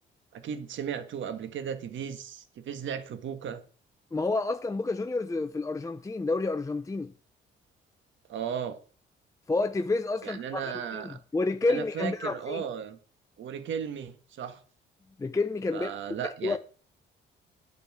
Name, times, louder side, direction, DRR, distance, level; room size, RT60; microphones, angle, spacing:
voice 1, 0.3-3.6 8.3-8.8 10.2-11.2 11.7-13.0 13.4-14.6 15.7-16.6, right 8 dB, 70° right, 1.6 m, -35 dB
voice 2, 4.1-7.1 9.5-12.6 15.2-15.9 16.2-16.6, left 3 dB, 15° left, 0.6 m, -29 dB
9.8 x 9.7 x 6.2 m
cardioid pair, 90°, 20 cm